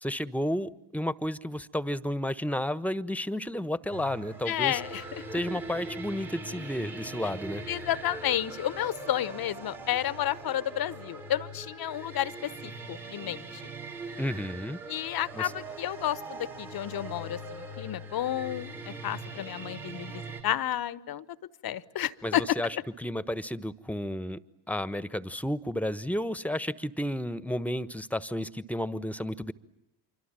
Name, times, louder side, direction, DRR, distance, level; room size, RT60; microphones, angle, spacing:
voice 1, 0.0-4.8 5.3-7.6 14.2-14.8 15.3-15.5 22.2-24.4 24.7-29.5, left 1 dB, 5° left, 17 dB, 1.3 m, -32 dB
sound 1, 3.9-20.4, right 2 dB, 85° right, 4.1 m, -41 dB
voice 2, 4.5-5.0 7.7-13.7 14.9-21.2 21.6-22.6, left 12 dB, 50° left, 19 dB, 1.1 m, -31 dB
27.0 x 24.5 x 9.0 m, 0.81 s
hypercardioid pair, 45°, 47 cm